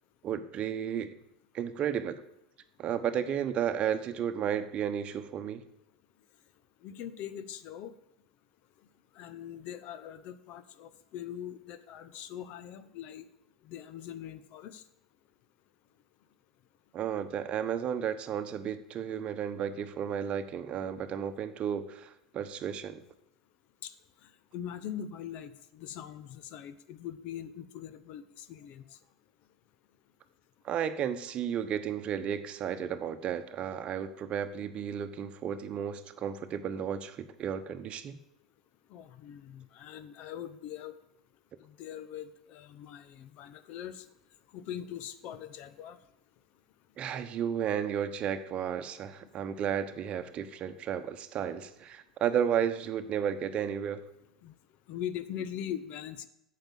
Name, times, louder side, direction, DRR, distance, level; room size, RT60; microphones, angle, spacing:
voice 1, 0.2-1.1 1.5-2.2 2.8-5.6 16.9-23.0 30.6-38.2 47.0-54.0, right 8 dB, 35° right, 9 dB, 1.0 m, -33 dB
voice 2, 6.8-8.0 9.1-13.3 13.6-14.8 23.8-23.9 24.2-29.0 38.9-41.0 41.6-44.1 44.5-46.0 54.4-54.6 54.9-56.3, left 10 dB, 45° left, 13 dB, 0.8 m, -42 dB
8.9 x 7.6 x 7.5 m, 0.80 s
figure-of-eight pair, 80°, 3 cm